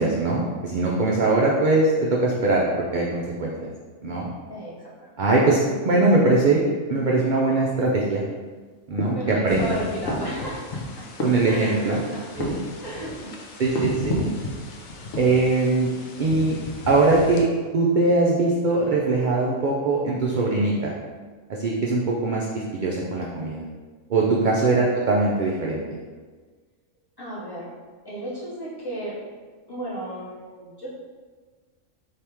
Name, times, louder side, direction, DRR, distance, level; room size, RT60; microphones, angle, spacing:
voice 1, 0.0-3.7 4.0-4.3 5.2-6.6 6.9-8.2 8.9-9.8 11.2-12.0 12.4-12.6 13.6-14.3 15.2-15.9 16.2-16.6 16.9-17.5 17.7-20.9 21.5-23.6 24.1-26.0, right 3 dB, 70° right, -3 dB, 0.4 m, -21 dB
voice 2, 4.5-5.1 8.9-11.0 11.5-12.2 12.8-13.3 24.3-24.6 27.2-27.7 28.0-29.2 29.7-30.9, right 1 dB, 20° left, -9 dB, 1.0 m, -34 dB
sound 1, 9.0-9.7 10.0-12.0 12.3-13.1 13.7-14.3 14.6-14.7 15.0-15.7, left 1 dB, 80° left, 1.2 m, -33 dB
sound 2, 9.5-17.4, left 2 dB, 65° left, 0.4 m, -35 dB
3.4 x 2.8 x 4.4 m, 1.4 s
omnidirectional pair, 1.4 m